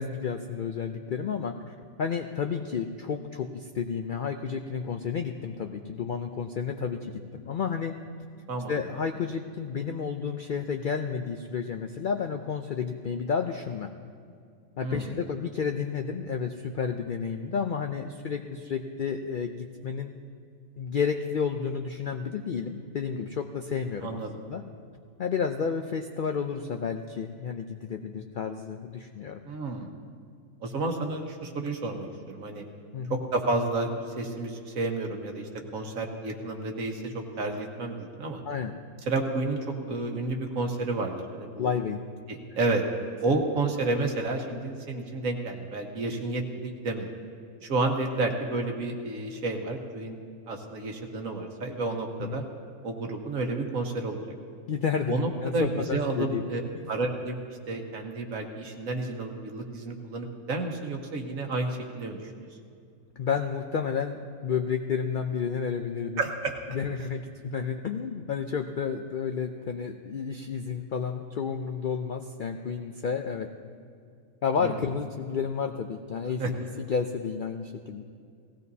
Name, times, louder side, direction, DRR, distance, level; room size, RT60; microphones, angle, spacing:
voice 1, 0.0-7.9 8.7-13.9 14.8-20.1 20.8-24.2 24.5-24.6 25.2-29.4 32.9-33.2 38.4-38.7 41.6-42.0 43.3-43.4 52.2-52.4 54.7-55.1 55.4-56.4 56.7-56.9 63.2-66.2 66.7-73.5 74.4-78.0, left 6 dB, 65° left, 5 dB, 0.5 m, -31 dB
voice 2, 8.5-8.8 14.8-15.2 24.0-24.4 29.5-29.9 30.6-32.6 33.1-38.4 39.1-41.7 42.3-42.8 43.2-47.1 47.6-50.2 50.5-52.4 52.8-54.2 55.1-56.6 56.9-57.3 57.7-62.5 66.2-66.5 74.6-74.8 76.4-76.5, right 2 dB, 75° right, 2 dB, 1.7 m, -31 dB
18.0 x 16.5 x 2.7 m, 2.3 s
omnidirectional pair, 1.5 m